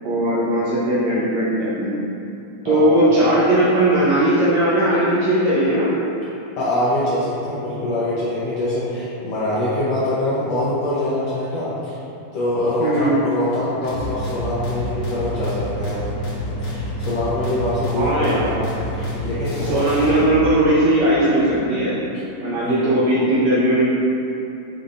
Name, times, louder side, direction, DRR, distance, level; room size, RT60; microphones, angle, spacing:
voice 1, 0.0-2.0 2.6-5.9 12.8-13.1 17.9-18.5 19.7-21.9 22.4-23.8, right 1 dB, 80° right, -9 dB, 1.6 m, -18 dB
voice 2, 2.6-3.0 6.6-12.0 12.3-16.1 16.6-18.6 19.0-19.8 22.5-22.8, left 1 dB, 80° left, -10 dB, 1.4 m, -24 dB
sound 1, 13.8-20.5, left 1 dB, 50° left, 1.6 m, -28 dB
8.8 x 5.3 x 2.5 m, 2.9 s
omnidirectional pair, 4.3 m